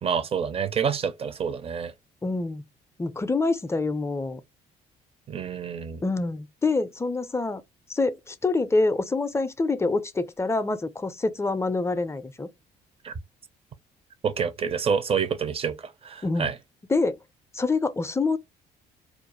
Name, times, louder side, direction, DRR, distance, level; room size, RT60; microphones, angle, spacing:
voice 1, 0.0-1.9 5.3-6.0 13.0-13.1 14.2-16.5, right 6 dB, 35° right, 0.5 m, -28 dB
voice 2, 2.2-2.6 3.0-4.4 6.0-7.6 7.9-12.5 16.2-16.5 16.9-17.2 17.5-18.4, left 3 dB, 15° left, 0.4 m, -26 dB
2.4 x 2.0 x 2.9 m
supercardioid pair, 75°, 17 cm